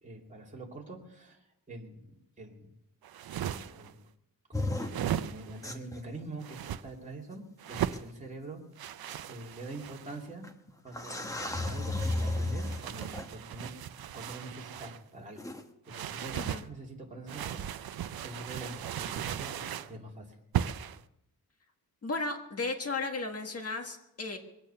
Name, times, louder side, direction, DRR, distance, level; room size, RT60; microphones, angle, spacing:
voice 1, 0.0-2.7 3.3-4.0 4.5-7.4 7.7-8.6 9.3-10.4 10.8-13.8 14.1-15.4 15.8-17.9 18.2-20.4, right 2 dB, 20° right, -2 dB, 2.6 m, -45 dB
sound 1, 3.0-3.9 4.8-5.7 6.4-6.8 7.6-8.1 8.8-10.2 11.2-15.0 15.9-16.7 17.3-19.9 20.5-21.0, right 10 dB, 70° right, 0.6 m, -37 dB
sound 2, 4.5-4.9 5.6-6.0 7.3-7.4 7.9-8.0 9.1-9.2 10.4-10.5 10.9-13.3 15.4-15.6, left 2 dB, 10° left, 1.0 m, -33 dB
voice 2, 22.0-24.4, left 3 dB, 40° left, 4 dB, 1.6 m, -35 dB
22.0 x 8.8 x 6.9 m, 0.85 s
wide cardioid pair, 175°, 37 cm